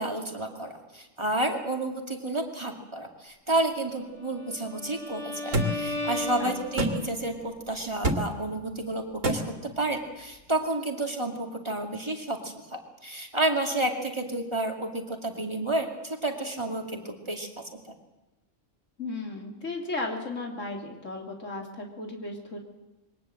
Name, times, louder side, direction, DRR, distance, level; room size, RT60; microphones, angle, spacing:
voice 1, 0.0-17.9, right 2 dB, 20° right, 3 dB, 2.4 m, -31 dB
Bowed string instrument, 4.1-7.2, left 2 dB, 30° left, 2.2 m, -35 dB
sound 1, 5.5-5.7 6.8-6.9 8.0-8.2 9.2-9.4, right 1 dB, 85° right, 2.5 m, -24 dB
voice 2, 19.0-22.6, left 2 dB, 85° left, 2 dB, 3.5 m, -35 dB
22.0 x 18.5 x 7.7 m, 1.0 s
omnidirectional pair, 1.3 m